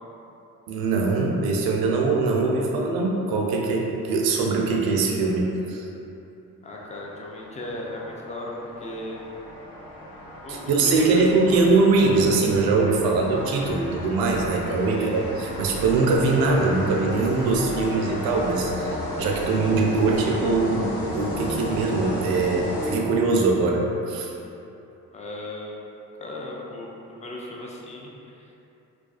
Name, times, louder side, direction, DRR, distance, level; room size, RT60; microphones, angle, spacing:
voice 1, 0.7-5.9 10.5-24.3, right 3 dB, 60° right, 0 dB, 0.5 m, -22 dB
sound 1, 6.6-23.4, left 1 dB, 60° left, 0.9 m, -34 dB
voice 2, 6.6-9.2 10.4-11.6 14.9-15.2 25.1-25.9 26.2-28.6, left 1 dB, 20° left, -3 dB, 0.4 m, -36 dB
2.3 x 2.2 x 2.4 m, 2.8 s
hypercardioid pair, 45°, 41 cm